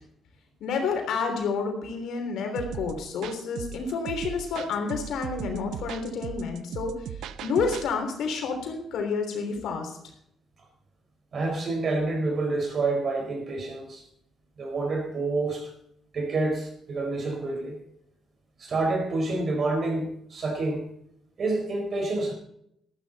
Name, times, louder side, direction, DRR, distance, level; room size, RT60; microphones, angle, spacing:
voice 1, 0.6-7.1 7.4-10.0, left 5 dB, 80° left, 4 dB, 3.4 m, -29 dB
sound 1, 2.6-7.9, right 9 dB, 80° right, 0.6 m, -38 dB
voice 2, 11.3-14.0 14.6-15.7 16.1-17.8 18.6-20.9 21.4-22.3, right 3 dB, 50° right, 3 dB, 4.6 m, -28 dB
13.0 x 12.5 x 4.2 m, 0.72 s
cardioid pair, 90°, 0 cm